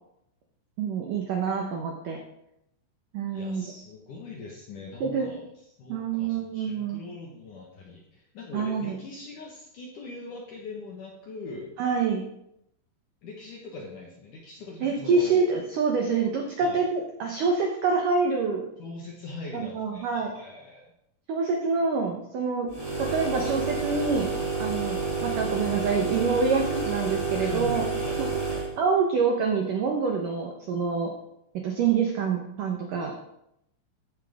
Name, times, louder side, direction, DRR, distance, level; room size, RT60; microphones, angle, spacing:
voice 1, 0.8-2.2 3.1-3.6 5.0-5.3 5.9-7.0 8.5-9.0 11.8-12.3 14.8-18.7 19.5-20.3 21.3-22.7 23.0-24.3 24.6-27.8 28.2-28.3 28.8-31.1 31.6-33.1, right 5 dB, 80° right, 2 dB, 1.8 m, -26 dB
voice 2, 3.3-5.5 5.8-11.7 13.2-15.4 16.6-16.9 18.8-20.9 27.4-28.2 28.5-28.6, left 3 dB, 65° left, -1 dB, 2.1 m, -41 dB
sound 1, 22.7-28.7, right 4 dB, 15° right, 1.0 m, -29 dB
15.0 x 9.9 x 3.6 m, 0.81 s
omnidirectional pair, 5.6 m